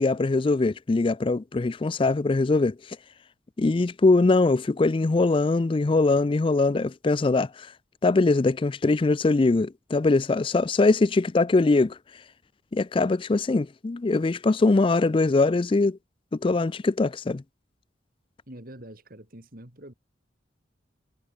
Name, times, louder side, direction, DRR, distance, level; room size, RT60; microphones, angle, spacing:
voice 1, 0.0-2.8 3.6-7.7 8.0-12.0 12.7-16.0 16.3-17.4, left 3 dB, 30° left, 0.4 m, -22 dB
voice 2, 18.5-19.9, right 1 dB, 50° right, 3.8 m, -45 dB
head